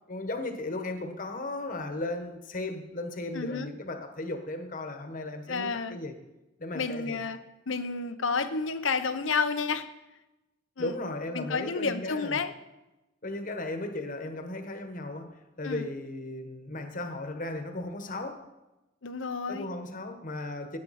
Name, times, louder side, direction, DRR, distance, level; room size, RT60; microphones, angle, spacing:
voice 1, 0.1-6.2 6.6-7.2 10.8-12.4 13.2-18.5 19.5-20.8, left 2 dB, 45° left, 1.3 m, -36 dB
voice 2, 3.3-3.7 5.5-6.0 6.7-7.4 7.7-9.9 10.8-11.0 11.3-12.5 15.6-15.9 19.0-19.7, left 4 dB, 80° left, 0.9 m, -30 dB
16.5 x 9.5 x 4.2 m
head